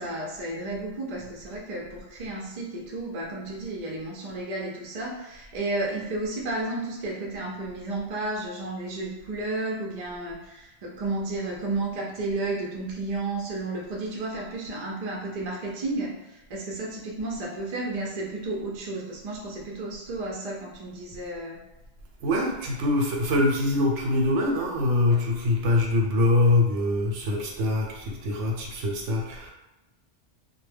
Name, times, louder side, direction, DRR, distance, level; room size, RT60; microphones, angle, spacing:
voice 1, 0.0-21.6, right 2 dB, 50° right, -2 dB, 0.5 m, -32 dB
voice 2, 22.2-29.5, left 2 dB, 85° right, 0 dB, 0.9 m, -24 dB
2.2 x 2.1 x 3.3 m, 0.98 s
omnidirectional pair, 1.2 m